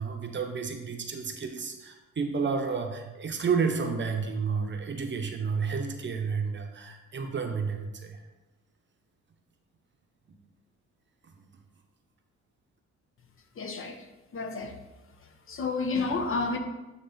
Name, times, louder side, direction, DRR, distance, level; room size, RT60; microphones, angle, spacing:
voice 1, 0.0-8.2 11.2-11.3, right 5 dB, 40° right, 0.9 m, -31 dB
voice 2, 13.6-14.1 14.3-14.8 15.5-16.6, left 3 dB, 45° left, 0.8 m, -30 dB
9.3 x 3.1 x 3.9 m
cardioid pair, 90°, 30 cm